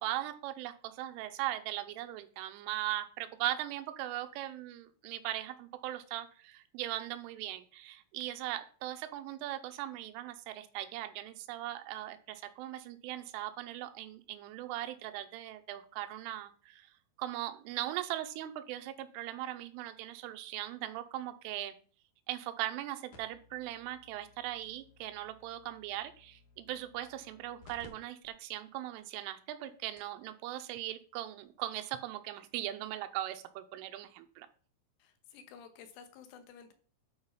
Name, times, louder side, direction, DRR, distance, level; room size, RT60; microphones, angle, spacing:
voice 1, 0.0-16.9 17.2-21.7 22.3-34.5, right 14 dB, 90° right, 8 dB, 3.2 m, -39 dB
sound 1, 23.1-27.9 28.2-28.3 29.0-29.1 29.6-29.7 30.0-30.2 31.5-31.6, left 2 dB, 55° left, 3.1 m, -60 dB
voice 2, 35.0-36.7, left 7 dB, 80° left, 8 dB, 3.5 m, -53 dB
9.6 x 4.8 x 5.5 m, 0.42 s
omnidirectional pair, 5.7 m